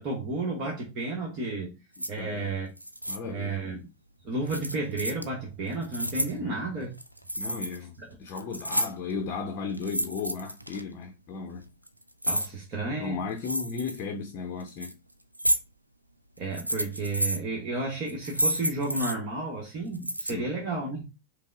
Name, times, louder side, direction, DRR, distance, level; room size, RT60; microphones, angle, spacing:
voice 1, 0.0-1.7 2.1-2.7 3.3-3.8 4.2-6.9 12.3-13.2 16.4-21.0, right 2 dB, 35° right, 1.0 m, -32 dB
sound 1, 1.9-2.1 2.8-3.2 4.5-5.2 5.7-6.3 6.9-7.8 8.1-9.1 9.7-10.8 11.6-12.5 13.4-14.0 14.6-14.9 15.3-15.6 16.4-17.4 18.1-19.1 19.9-20.3, right 1 dB, 85° right, 0.4 m, -30 dB
voice 2, 2.0-2.5 3.1-3.6 6.3-6.6 7.4-11.6 13.0-14.9 20.3-20.5, left 5 dB, 40° left, 0.6 m, -35 dB
5.3 x 2.0 x 3.3 m
figure-of-eight pair, 90°, 0 cm